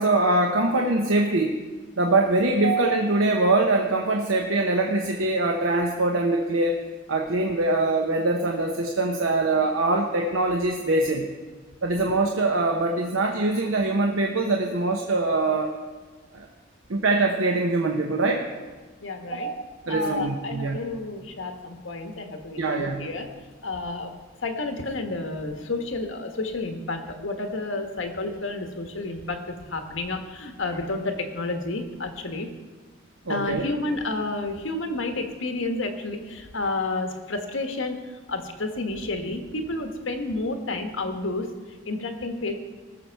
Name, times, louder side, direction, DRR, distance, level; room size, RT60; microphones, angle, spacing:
voice 1, 0.0-1.6 2.0-6.8 7.1-11.3 11.8-15.7 16.3-16.5 16.9-18.5 19.3-19.5 19.8-20.8 22.6-23.0 33.3-33.6, right 2 dB, 85° right, 2 dB, 0.9 m, -23 dB
voice 2, 19.0-19.5 19.9-23.3 23.6-24.1 24.4-32.5 33.3-42.5, left 2 dB, 75° left, 5 dB, 1.3 m, -30 dB
18.5 x 6.8 x 4.6 m, 1.3 s
head